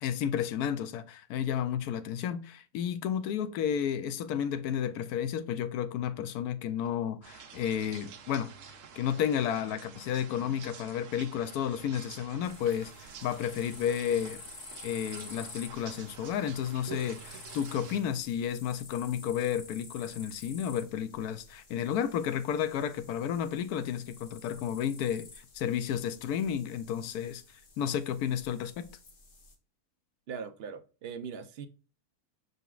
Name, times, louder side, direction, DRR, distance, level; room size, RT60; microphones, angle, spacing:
voice 1, 0.0-8.5 9.0-14.4 14.8-27.4 27.8-28.9, left 9 dB, 80° left, 1.1 m, -32 dB
sound 1, 7.2-18.0, right 7 dB, 90° right, 1.2 m, -48 dB
sound 2, 12.4-29.5, left 3 dB, 40° left, 0.9 m, -51 dB
voice 2, 30.3-31.7, right 6 dB, 70° right, 0.6 m, -40 dB
5.6 x 4.0 x 2.4 m
omnidirectional pair, 1.6 m